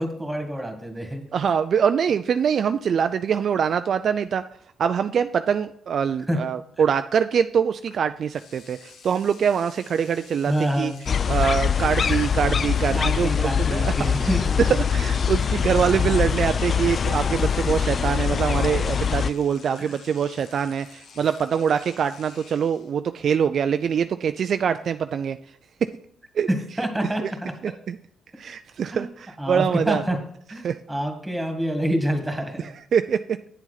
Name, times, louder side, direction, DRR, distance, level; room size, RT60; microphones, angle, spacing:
voice 1, 0.0-1.2 6.3-6.4 6.8-6.9 10.5-11.0 12.9-14.8 15.8-16.9 19.8-20.0 26.5-27.7 28.9-29.1 29.4-30.2 30.5-30.6 30.9-32.7, equal, 10° right, 5 dB, 1.9 m, -27 dB
voice 2, 1.3-4.4 4.8-10.9 11.3-13.9 14.7-25.4 25.8-25.9 26.3-26.5 27.2-27.3 27.9-28.0 28.4-30.0 30.6-30.8 32.9-33.4, right 7 dB, 55° right, 9 dB, 0.3 m, -24 dB
Engine / Domestic sounds home sounds, 7.9-8.0 8.3-22.9, left 5 dB, 70° left, 1.0 m, -49 dB
sound 1, 11.1-19.3, left 7 dB, 45° left, 0.3 m, -23 dB
8.9 x 7.3 x 4.0 m, 0.65 s
cardioid pair, 90°, 0 cm